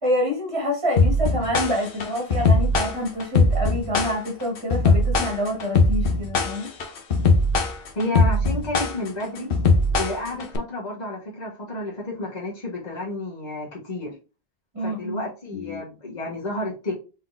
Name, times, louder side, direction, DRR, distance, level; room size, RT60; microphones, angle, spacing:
voice 1, 0.0-6.7 14.7-15.2 15.5-15.8, left 1 dB, 25° right, 1.5 m, -27 dB
sound 1, 1.0-10.6, left 3 dB, 65° left, 1.0 m, -20 dB
voice 2, 7.9-9.5 9.9-14.1 14.8-16.9, left 1 dB, 45° left, 1.5 m, -31 dB
4.2 x 3.8 x 2.5 m
omnidirectional pair, 1.0 m